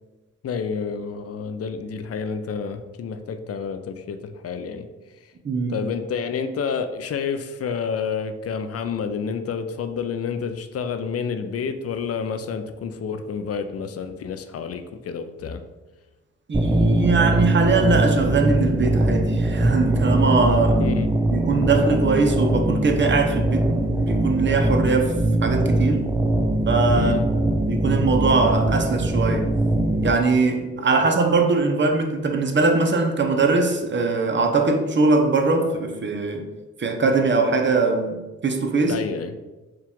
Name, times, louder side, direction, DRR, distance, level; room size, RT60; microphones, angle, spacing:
voice 1, 0.4-4.9 5.7-15.6 20.8-21.1 26.9-27.3 30.9-31.1 38.9-39.4, left 6 dB, 50° left, 9 dB, 0.5 m, -29 dB
voice 2, 5.4-5.8 16.5-20.8 21.3-25.1 25.4-26.1 26.7-27.1 27.7-29.5 30.0-36.5 36.8-39.0, right 3 dB, 40° right, 4 dB, 0.7 m, -21 dB
sound 1, 16.5-30.1, right 1 dB, 10° right, 0.4 m, -21 dB
4.6 x 2.4 x 3.6 m, 1.1 s
supercardioid pair, 50°, 31 cm